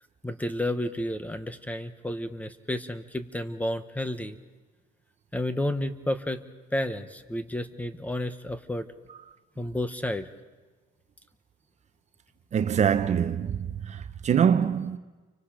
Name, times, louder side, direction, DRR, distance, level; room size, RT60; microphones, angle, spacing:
voice 1, 0.2-4.4 5.3-6.4 6.7-8.9 9.6-10.3, left 1 dB, 10° left, 1.4 m, -31 dB
voice 2, 12.5-15.0, right 8 dB, 45° right, 1.0 m, -24 dB
30.0 x 24.5 x 5.2 m
cardioid pair, 110°, 17 cm